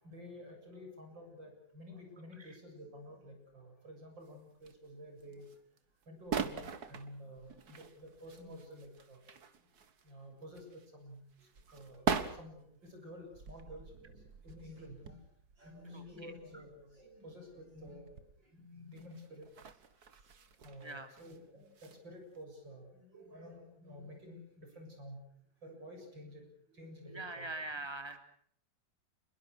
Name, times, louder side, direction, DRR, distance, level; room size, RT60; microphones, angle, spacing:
voice 1, 0.0-5.5 6.1-9.3 10.0-14.1 14.4-15.2 15.6-18.2 18.4-19.5 20.6-25.2 25.6-26.4 26.7-27.6, equal, 70° right, 3 dB, 8.0 m, -51 dB
sound 1, 4.2-4.9 5.2-5.8 6.0-10.1 10.4-18.4 18.9-21.4 21.7-22.0 22.3-22.4, right 6 dB, 55° right, 2.1 m, -43 dB
voice 2, 15.9-16.3 20.8-21.1 27.1-28.2, right 2 dB, 15° right, 7 dB, 3.1 m, -43 dB
28.0 x 22.0 x 6.4 m, 0.66 s
omnidirectional pair, 2.1 m